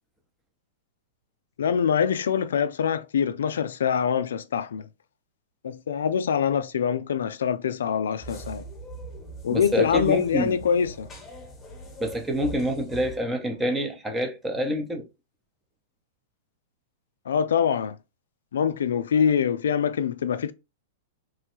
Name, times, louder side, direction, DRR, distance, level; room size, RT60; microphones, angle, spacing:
voice 1, 1.6-4.9 5.6-8.6 9.4-11.1 17.3-18.0 18.5-20.5, left 7 dB, 85° left, 0.3 m, -24 dB
sound 1, 8.2-13.2, right 2 dB, 20° left, 1.1 m, -41 dB
voice 2, 9.5-10.6 12.0-15.1, equal, 10° right, 0.7 m, -27 dB
3.1 x 2.2 x 3.0 m
hypercardioid pair, 130°, 0 cm